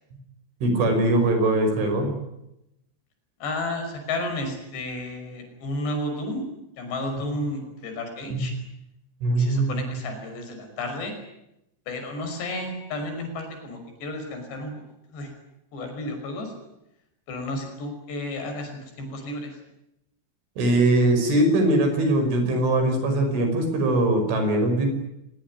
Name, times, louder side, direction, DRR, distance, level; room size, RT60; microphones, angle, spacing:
voice 1, 0.6-2.1 7.2-7.3 8.3-8.5 9.2-9.8 20.6-24.9, right 1 dB, 85° right, 6 dB, 7.9 m, -21 dB
voice 2, 3.4-6.4 6.8-8.5 9.4-11.1 11.9-14.7 15.1-15.3 15.7-16.5 17.3-19.5, left 1 dB, 65° left, 5 dB, 7.9 m, -32 dB
24.0 x 21.5 x 9.8 m, 0.85 s
omnidirectional pair, 5.4 m